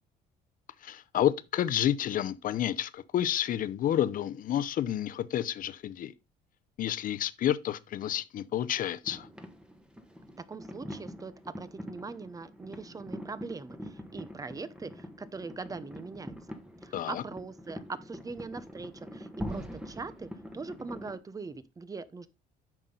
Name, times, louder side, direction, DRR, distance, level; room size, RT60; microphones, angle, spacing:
voice 1, 0.8-6.1 6.8-9.3 16.9-17.2, left 11 dB, 55° left, 0.7 m, -30 dB
sound 1, 9.0-21.2, equal, 5° right, 1.3 m, -44 dB
voice 2, 10.5-16.3 16.8-22.3, right 4 dB, 20° right, 0.8 m, -41 dB
9.0 x 6.1 x 3.9 m
cardioid pair, 110°, 17 cm